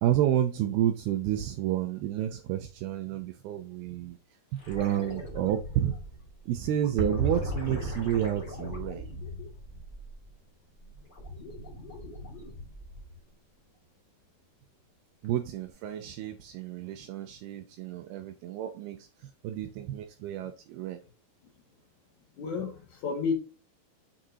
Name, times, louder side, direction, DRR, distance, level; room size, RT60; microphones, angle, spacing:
voice 1, 0.0-4.2 4.5-6.0 6.5-9.1 15.2-21.0, right 11 dB, 80° right, 2.3 m, -30 dB
sound 1, 4.5-10.3 10.7-13.2 15.7-15.8, left 1 dB, 40° left, 0.7 m, -42 dB
sound 2, 7.0-10.0 10.3-10.4 11.0-11.1 15.6-15.7, right 2 dB, 35° right, 2.3 m, -34 dB
voice 2, 22.4-23.3, left 5 dB, 55° left, 2.4 m, -31 dB
7.4 x 6.4 x 2.8 m
omnidirectional pair, 5.0 m